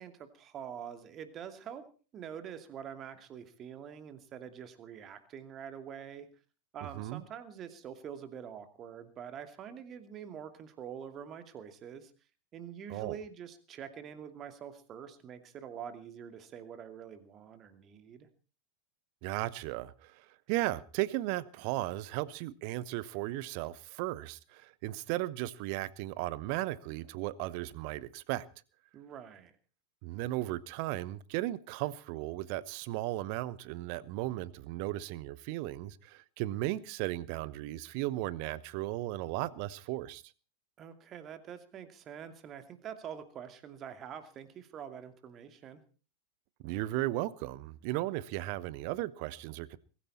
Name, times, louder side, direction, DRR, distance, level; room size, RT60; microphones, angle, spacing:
voice 1, 0.0-1.9 2.1-6.3 6.7-12.1 12.5-18.3 28.9-29.5 40.8-45.8, right 8 dB, 30° right, 2.5 m, -45 dB
voice 2, 6.8-7.2 12.9-13.2 19.2-28.4 30.0-40.2 46.6-49.8, right 16 dB, 45° right, 1.0 m, -36 dB
22.0 x 14.5 x 4.3 m
figure-of-eight pair, 90°, 0 cm